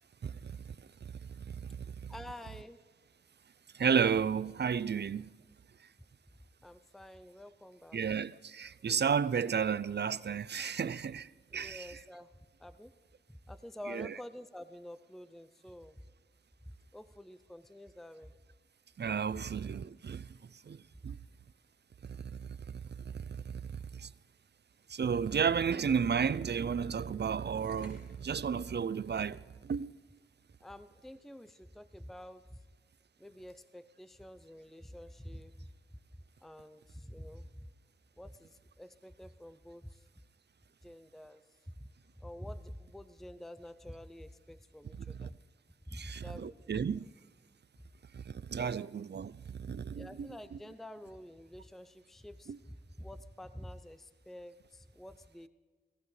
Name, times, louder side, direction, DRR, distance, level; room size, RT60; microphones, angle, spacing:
voice 1, 2.1-2.8 6.6-8.0 11.5-12.3 12.6-12.9 13.5-16.0 16.9-18.3 30.6-32.6 33.2-35.5 36.4-37.5 38.2-40.0 40.8-41.4 41.8-41.9 42.2-45.3 45.9-46.7 48.7-48.9 49.9-55.5, left 1 dB, ahead, 0.5 m, -48 dB
voice 2, 3.7-5.3 7.9-12.0 13.9-14.2 19.0-20.3 20.7-20.8 21.0-21.2 22.0-22.2 23.5-23.6 23.9-24.1 24.9-29.9 45.1-45.3 45.9-47.0 48.1-48.2 48.5-50.6 52.5-52.6, right 7 dB, 55° right, 0.5 m, -33 dB
sound 1, 27.6-28.4, left 1 dB, 55° left, 3.7 m, -59 dB
25.5 x 16.5 x 3.3 m
wide cardioid pair, 60°, 20 cm